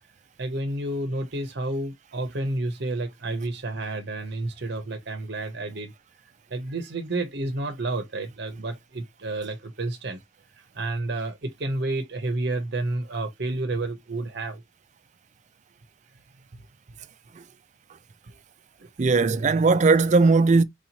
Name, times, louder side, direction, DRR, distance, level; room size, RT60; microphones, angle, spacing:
voice 1, 0.4-5.9 6.5-10.2 10.7-14.6 18.3-18.4 18.8-18.9, right 2 dB, 60° right, 0.8 m, -30 dB
voice 2, 19.0-20.6, right 3 dB, 35° right, 0.4 m, -18 dB
4.6 x 3.0 x 2.8 m
head